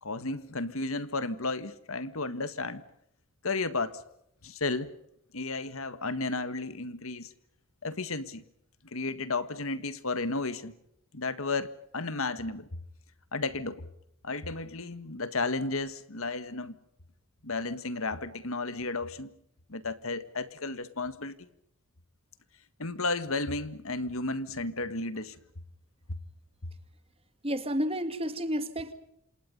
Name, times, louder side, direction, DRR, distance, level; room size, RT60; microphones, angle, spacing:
voice 1, 0.0-2.8 3.4-4.0 4.4-4.9 5.3-7.3 7.8-8.4 8.9-10.7 11.1-12.7 13.3-13.8 14.2-16.8 17.4-19.3 19.7-21.4 22.8-25.4, left 3 dB, 65° left, 13 dB, 1.7 m, -33 dB
voice 2, 27.4-28.9, equal, 25° right, 10 dB, 2.2 m, -31 dB
28.0 x 27.5 x 5.4 m, 0.75 s
head